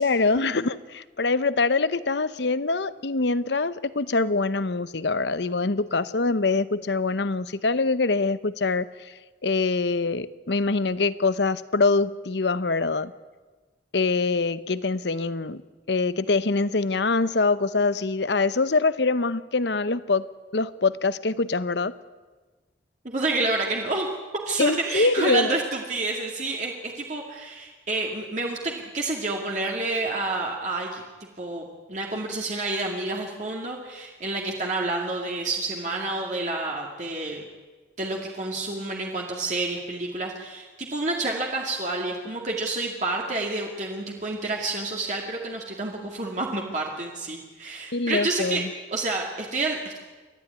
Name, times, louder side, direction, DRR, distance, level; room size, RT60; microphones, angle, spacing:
voice 1, 0.0-9.1 9.4-13.1 13.9-15.6 15.9-20.2 20.5-21.9 24.6-25.6 47.9-48.7, left 3 dB, 70° left, 15 dB, 0.8 m, -24 dB
voice 2, 23.0-24.1 24.5-31.0 31.4-37.4 38.0-48.6 48.9-50.0, right 2 dB, 40° right, -1 dB, 2.3 m, -29 dB
29.0 x 13.0 x 9.5 m, 1.3 s
head